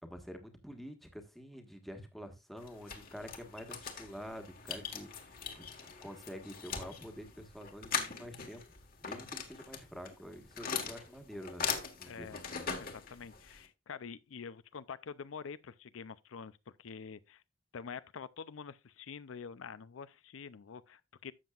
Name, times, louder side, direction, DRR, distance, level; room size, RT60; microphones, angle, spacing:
voice 1, 0.0-5.1 5.5-5.6 6.0-8.6 9.0-12.7, equal, ahead, 1.4 m, -47 dB
sound 1, 2.6-13.7, left 6 dB, 45° left, 1.5 m, -41 dB
voice 2, 12.0-12.4 12.8-17.4 17.7-21.3, left 6 dB, 90° left, 0.5 m, -46 dB
12.5 x 7.7 x 2.4 m
head